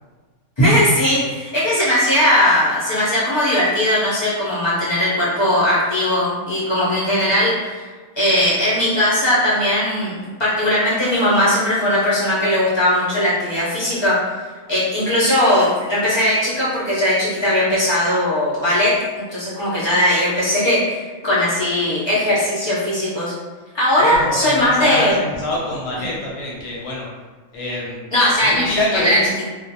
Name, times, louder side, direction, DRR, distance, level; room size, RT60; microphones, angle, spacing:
voice 1, 0.6-7.9 8.2-14.2 14.7-18.9 19.3-23.3 23.7-25.1 28.1-28.6 29.0-29.2, left 1 dB, 40° left, -9 dB, 0.4 m, -18 dB
voice 2, 24.0-27.1 27.5-28.0 28.4-29.3, left 1 dB, 65° left, -5 dB, 0.8 m, -25 dB
2.5 x 2.0 x 2.7 m, 1.4 s
omnidirectional pair, 1.5 m